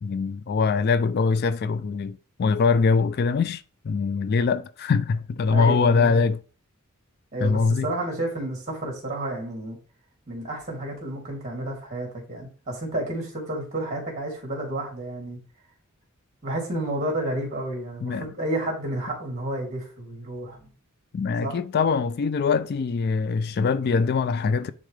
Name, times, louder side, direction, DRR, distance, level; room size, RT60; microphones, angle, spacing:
voice 1, 0.0-6.4 7.4-7.9 18.0-18.3 21.1-24.7, left 4 dB, 50° left, 0.3 m, -23 dB
voice 2, 5.5-6.2 7.3-9.8 10.3-15.4 16.4-20.7 21.4-21.5, right 1 dB, 35° right, 2.9 m, -31 dB
9.8 x 3.7 x 3.2 m
head